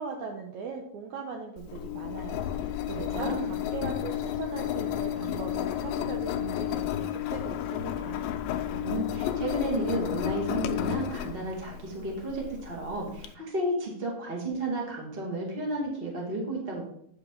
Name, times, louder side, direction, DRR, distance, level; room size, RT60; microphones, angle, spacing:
voice 1, 0.0-8.2, right 5 dB, 85° right, 2 dB, 1.6 m, -39 dB
Engine, 1.6-13.3, left 11 dB, 85° left, 2.0 m, -32 dB
voice 2, 2.9-3.5 8.7-16.8, right 1 dB, 25° right, -2 dB, 1.2 m, -32 dB
9.1 x 6.1 x 3.8 m, 0.69 s
omnidirectional pair, 4.6 m